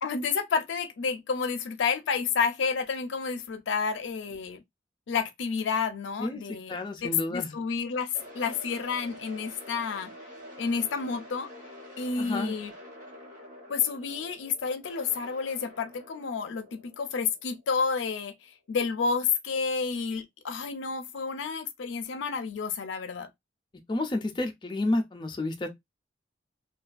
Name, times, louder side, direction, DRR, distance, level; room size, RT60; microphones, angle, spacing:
voice 1, 0.0-4.6 5.1-10.1 10.6-11.5 12.0-12.7 13.7-23.3, left 5 dB, 85° left, 0.4 m, -30 dB
voice 2, 6.7-7.6 12.2-12.6 23.9-25.7, left 2 dB, 25° left, 0.4 m, -30 dB
sound 1, 8.1-18.2, left 1 dB, 45° right, 1.0 m, -47 dB
2.3 x 2.3 x 2.4 m
head